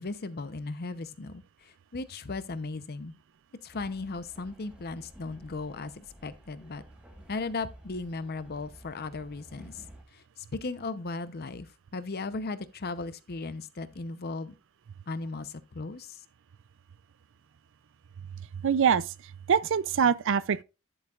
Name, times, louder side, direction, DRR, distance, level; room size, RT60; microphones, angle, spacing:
voice 1, 0.0-3.1 3.6-6.8 7.3-9.8 10.1-14.5 15.1-16.2, left 3 dB, 45° left, 0.7 m, -37 dB
Train, 3.7-10.0, right 1 dB, 5° right, 1.4 m, -53 dB
voice 2, 18.6-19.1 19.5-20.6, right 7 dB, 60° right, 0.4 m, -24 dB
10.5 x 7.8 x 2.4 m
head